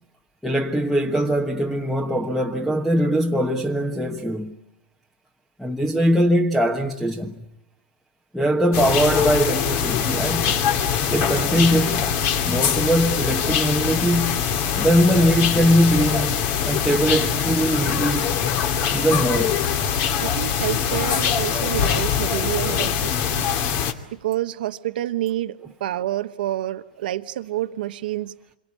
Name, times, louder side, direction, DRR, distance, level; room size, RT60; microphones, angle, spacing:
voice 1, 0.4-4.6 5.6-7.3 8.3-10.6 11.1-14.4 14.8-18.4 18.9-19.6, equal, ahead, 1.4 m, -21 dB
sound 1, 8.7-23.9, left 8 dB, 45° left, 2.6 m, -23 dB
voice 2, 20.2-23.4 24.1-28.3, right 14 dB, 75° right, 1.1 m, -28 dB
28.0 x 23.0 x 8.6 m
hypercardioid pair, 135°, 5 cm